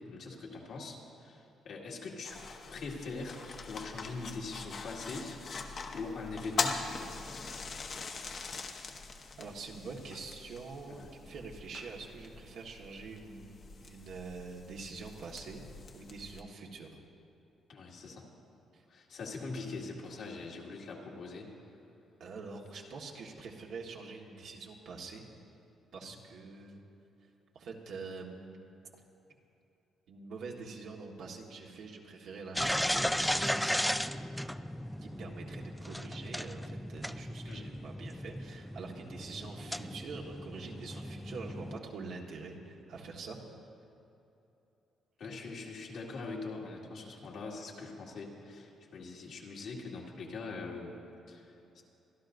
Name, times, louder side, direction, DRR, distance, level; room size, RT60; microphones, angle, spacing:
voice 1, 0.1-2.4 2.7-5.6 5.9-7.2 10.9-11.1 17.7-18.3 18.9-21.5 26.0-26.2 37.5-37.7 45.2-50.9 51.3-51.5 51.8-51.9, left 3 dB, 70° left, -2 dB, 2.1 m, -42 dB
sound 1, 2.2-16.4, left 4 dB, 55° left, 1.0 m, -42 dB
voice 2, 9.4-15.6 15.9-17.0 18.7-18.8 22.2-25.2 25.9-26.8 27.5-28.6 30.1-33.8 35.0-43.4, right 4 dB, 75° right, -1 dB, 1.5 m, -45 dB
sound 2, 32.6-41.8, equal, ahead, 0.3 m, -36 dB
24.5 x 11.5 x 2.6 m, 2.9 s
cardioid pair, 90°, 0 cm